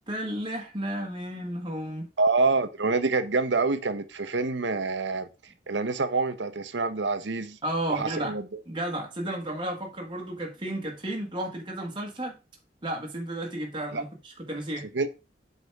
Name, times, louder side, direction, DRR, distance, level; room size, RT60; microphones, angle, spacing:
voice 1, 0.1-2.1 7.6-8.3 8.7-12.4 12.8-14.9, right 1 dB, 25° right, 1.6 m, -33 dB
voice 2, 2.2-5.3 5.7-7.6 7.9-8.6 13.9-14.0 14.9-15.1, right 3 dB, 80° right, 0.9 m, -26 dB
8.1 x 4.2 x 4.7 m
head